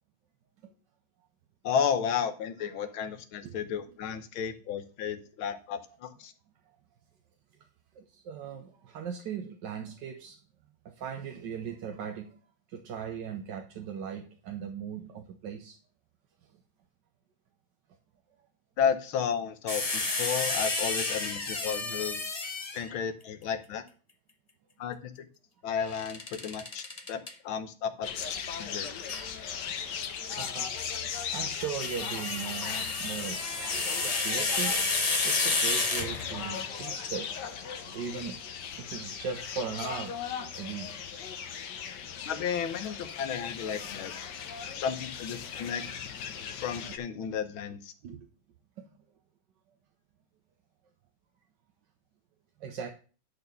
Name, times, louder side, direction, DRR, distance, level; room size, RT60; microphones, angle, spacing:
voice 1, 1.6-6.3 18.8-22.2 22.7-23.8 24.8-25.3 25.6-28.1 28.6-28.9 42.3-44.1 44.7-45.8 46.5-47.9, left 7 dB, 90° left, 9 dB, 1.8 m, -33 dB
voice 2, 7.9-10.4 10.8-12.4 12.7-15.8 29.5-29.6 30.4-30.7 31.2-33.5 34.0-34.7 35.2-38.4 38.8-40.2 40.5-40.9 44.6-44.7 48.0-48.2 52.6-52.9, right 7 dB, 65° right, 4 dB, 1.5 m, -38 dB
sound 1, 19.7-23.0 25.9-27.3 29.1-29.3 31.4-36.5, left 3 dB, 25° left, 0.8 m, -31 dB
sound 2, 28.0-47.0, left 7 dB, 65° left, 1.5 m, -37 dB
10.5 x 4.3 x 6.8 m, 0.38 s
omnidirectional pair, 2.2 m